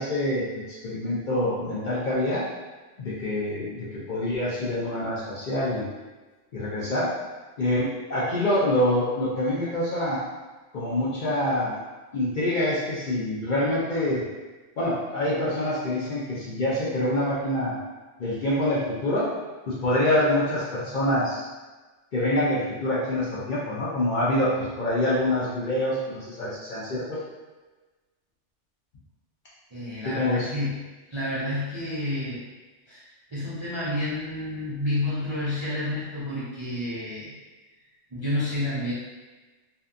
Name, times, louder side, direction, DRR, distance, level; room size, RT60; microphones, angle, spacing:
voice 1, 0.0-2.4 3.0-5.9 6.5-7.1 7.6-10.2 10.7-11.8 12.1-14.2 14.8-17.8 18.2-19.3 19.7-21.4 22.1-27.2 30.0-30.5, left 1 dB, 55° left, -8 dB, 0.6 m, -26 dB
voice 2, 29.7-30.8 31.1-32.4 32.9-37.3 38.1-38.9, left 1 dB, 45° right, -11 dB, 0.3 m, -30 dB
2.7 x 2.3 x 2.4 m, 1.2 s
omnidirectional pair, 1.2 m